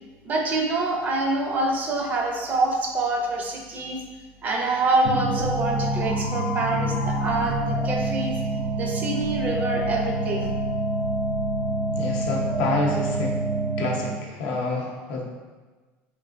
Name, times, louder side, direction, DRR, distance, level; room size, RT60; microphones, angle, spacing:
voice 1, 0.2-4.0 4.4-8.4 8.8-10.5, right 2 dB, 35° right, 1 dB, 0.5 m, -26 dB
sound 1, 5.0-14.3, right 2 dB, 65° right, 0.7 m, -26 dB
voice 2, 11.9-13.4 13.8-15.2, left 3 dB, 85° left, -1 dB, 0.6 m, -28 dB
3.1 x 2.8 x 2.5 m, 1.3 s
cardioid pair, 140°, 5 cm